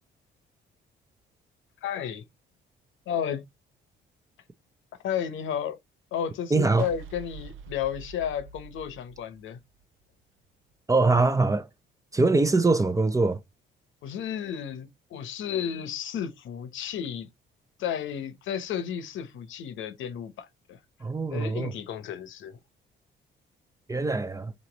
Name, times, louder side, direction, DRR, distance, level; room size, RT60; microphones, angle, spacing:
voice 1, 1.8-2.2 3.1-3.4 5.0-5.8 6.1-9.6 14.0-17.3 17.8-20.8 21.3-22.6, left 9 dB, 75° left, 0.9 m, -32 dB
voice 2, 6.5-6.9 10.9-11.7 12.1-13.4 21.0-21.7 23.9-24.5, right 3 dB, 15° right, 0.5 m, -23 dB
sound 1, 6.8-10.0, right 5 dB, 85° right, 0.6 m, -45 dB
4.0 x 3.1 x 3.9 m
cardioid pair, 90°, 20 cm